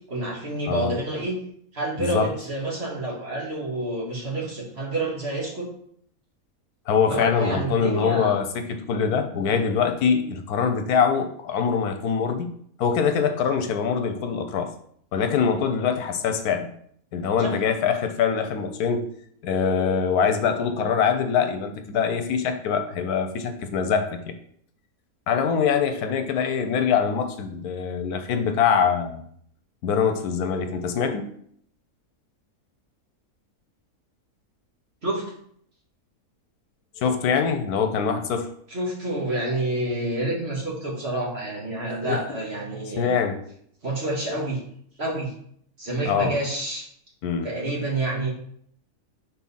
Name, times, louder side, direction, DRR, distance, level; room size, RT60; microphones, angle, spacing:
voice 1, 0.0-1.4 1.7-5.7 7.1-8.3 9.4-9.6 17.4-17.5 35.0-35.3 38.7-43.1 43.8-44.6 45.0-45.3 45.8-46.8 47.4-48.3, right 2 dB, 45° right, -4 dB, 2.0 m, -28 dB
voice 2, 0.7-1.0 2.0-2.3 6.9-12.5 12.8-14.7 15.1-16.7 17.1-19.1 19.4-24.3 25.3-29.2 29.8-31.3 37.0-38.5 42.1-42.2 43.0-43.4 46.0-46.3 47.2-47.5, left 6 dB, 85° left, 7 dB, 1.3 m, -23 dB
4.6 x 4.3 x 5.5 m, 0.64 s
omnidirectional pair, 1.6 m